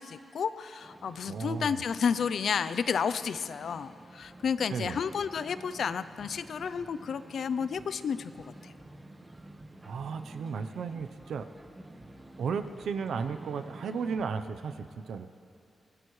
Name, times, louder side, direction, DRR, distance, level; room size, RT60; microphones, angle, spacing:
voice 1, 0.0-8.7, left 6 dB, 75° left, 13 dB, 0.5 m, -31 dB
sound 1, 0.8-14.2, right 2 dB, 20° right, 1.4 m, -50 dB
voice 2, 1.3-1.8 4.7-5.0 9.8-11.5 12.4-15.3, right 5 dB, 85° right, 9 dB, 0.7 m, -34 dB
24.0 x 17.5 x 3.2 m, 2.6 s
wide cardioid pair, 105°, 0 cm